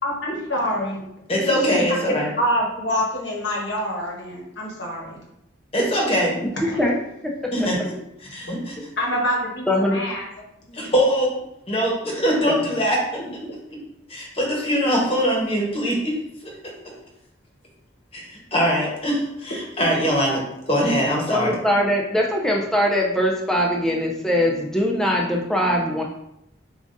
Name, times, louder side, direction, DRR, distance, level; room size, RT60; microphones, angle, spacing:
voice 1, 0.0-1.0 1.4-5.2 6.7-6.8 8.2-8.3 9.0-10.2 10.7-10.9 13.4-13.5, equal, 60° left, -2 dB, 1.2 m, -26 dB
voice 2, 1.3-2.3 5.7-6.4 7.5-7.8 8.3-8.9 10.7-11.3 11.7-13.0 14.1-16.2 18.1-21.5, equal, 30° left, -2 dB, 1.0 m, -22 dB
voice 3, 9.7-10.0 12.5-12.6 21.3-26.0, equal, 5° left, -2 dB, 0.5 m, -21 dB
7.2 x 2.5 x 2.6 m, 0.81 s
head